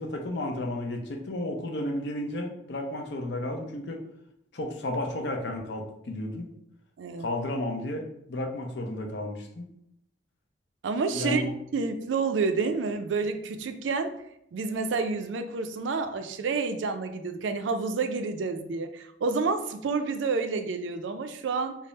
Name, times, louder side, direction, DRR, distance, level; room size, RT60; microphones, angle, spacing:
voice 1, 0.0-4.0 4.5-6.5 7.2-9.6 11.1-11.5, left 1 dB, 70° left, 2 dB, 0.6 m, -32 dB
voice 2, 7.0-7.3 10.8-14.1 14.5-21.8, right 4 dB, 85° right, 8 dB, 0.4 m, -29 dB
3.5 x 2.0 x 3.9 m, 0.76 s
head